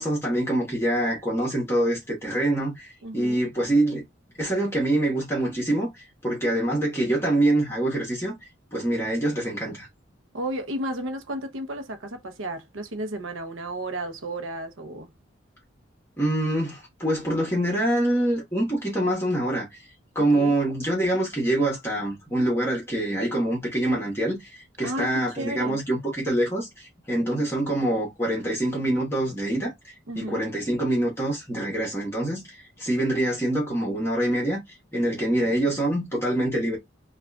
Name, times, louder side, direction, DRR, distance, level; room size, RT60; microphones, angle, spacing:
voice 1, 0.0-4.0 4.4-8.3 8.7-9.9 16.2-19.8 20.1-29.7 30.1-34.6 34.9-36.8, right 1 dB, 15° left, 1.3 m, -25 dB
voice 2, 3.0-3.4 10.3-15.1 20.3-20.6 24.8-25.8 30.1-30.5, right 1 dB, 85° right, 0.8 m, -33 dB
4.7 x 2.4 x 2.3 m
head